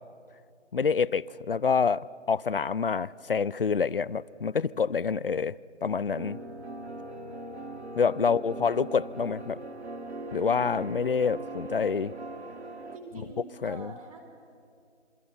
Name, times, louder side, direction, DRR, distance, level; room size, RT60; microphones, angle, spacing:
voice 1, 0.7-6.4 8.0-9.6 10.3-12.1 13.6-13.9, left 5 dB, 50° left, 0.5 m, -27 dB
sound 1, 6.1-13.0, right 2 dB, 60° right, 2.2 m, -40 dB
voice 2, 8.2-8.7 12.9-14.2, right 3 dB, 30° right, 4.1 m, -46 dB
27.5 x 25.0 x 7.8 m
figure-of-eight pair, 160°, 36 cm